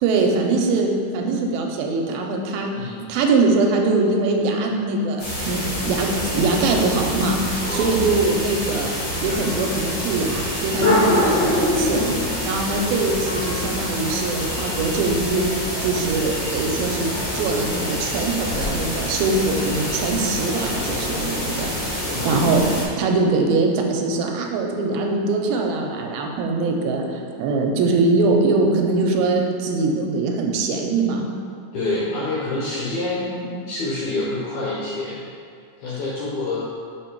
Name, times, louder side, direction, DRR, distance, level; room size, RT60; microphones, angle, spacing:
voice 1, 0.0-9.0 9.2-12.0 12.4-15.4 15.8-17.1 17.3-22.7 23.0-31.3 33.2-33.5, right 3 dB, 80° right, 2 dB, 2.3 m, -22 dB
voice 2, 2.7-3.0 7.6-8.1 10.8-11.1 22.0-22.7 31.7-33.2 33.7-35.3 35.8-36.7, left 2 dB, 75° left, -6 dB, 1.8 m, -27 dB
sound 1, 5.2-22.8, left 1 dB, 55° left, 1.1 m, -25 dB
5.2 x 4.4 x 4.5 m, 2.3 s
omnidirectional pair, 4.4 m